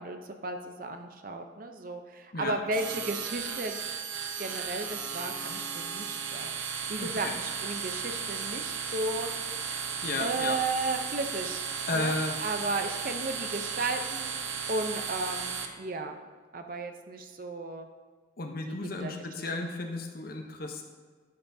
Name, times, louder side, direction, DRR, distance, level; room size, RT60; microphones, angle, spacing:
voice 1, 0.0-3.7 4.4-9.3 9.7-9.9 10.2-11.6 11.9-12.1 12.4-14.3 14.7-16.2 16.5-17.9 18.6-19.1, right 2 dB, 45° right, 6 dB, 0.7 m, -34 dB
sound 1, 2.7-15.7, right 6 dB, 85° right, 0.9 m, -35 dB
voice 2, 7.0-7.4 10.0-10.6 11.9-12.4 18.4-20.8, left 2 dB, 50° left, 3 dB, 0.9 m, -33 dB
11.5 x 7.8 x 2.7 m, 1.5 s
head